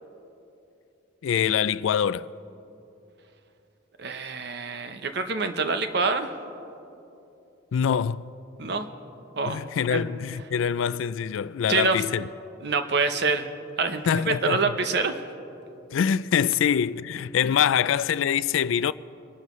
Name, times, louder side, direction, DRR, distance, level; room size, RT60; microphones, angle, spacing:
voice 1, 1.2-2.3 7.7-8.3 9.5-12.3 14.1-14.7 15.9-18.9, left 8 dB, 75° left, 0.3 m, -24 dB
voice 2, 4.0-6.3 8.6-8.9 9.4-9.6 9.9-10.0 11.7-12.0 12.6-13.5 13.8-15.1, right 4 dB, 55° right, 0.8 m, -26 dB
24.0 x 12.0 x 3.2 m
head